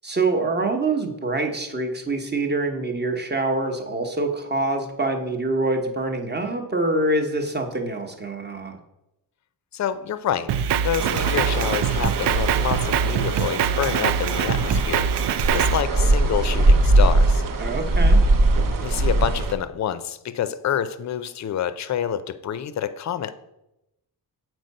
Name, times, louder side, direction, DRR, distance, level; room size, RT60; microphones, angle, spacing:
voice 1, 0.0-8.8 17.6-18.2, right 2 dB, 25° right, 4 dB, 0.9 m, -25 dB
voice 2, 9.7-15.1 15.5-17.4 18.8-23.3, left 9 dB, 45° left, 14 dB, 0.4 m, -27 dB
Drum kit, 10.5-15.8, right 8 dB, 90° right, 0.5 m, -23 dB
sound 1, 11.0-19.6, right 2 dB, 55° right, 0.7 m, -21 dB
7.8 x 4.6 x 5.3 m, 0.89 s
wide cardioid pair, 170°, 39 cm